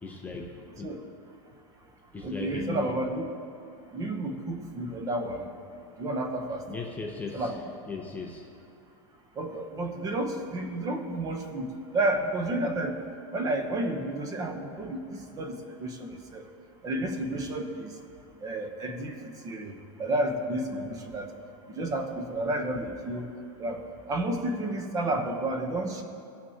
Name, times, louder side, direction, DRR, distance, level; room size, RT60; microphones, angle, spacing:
voice 1, 0.0-1.0 2.1-2.9 6.7-7.6 7.9-8.5, left 4 dB, 10° left, 0 dB, 0.6 m, -37 dB
voice 2, 2.2-3.3 3.9-5.5 6.0-6.6 7.3-7.6 9.4-11.7 11.9-12.9 13.3-16.4 16.8-17.9 18.4-19.1 19.4-19.7 20.0-21.3 21.7-23.3 23.6-23.8 24.1-26.0, right 1 dB, 20° right, 5 dB, 0.8 m, -31 dB
18.0 x 6.0 x 2.8 m, 2.6 s
supercardioid pair, 155°, 16 cm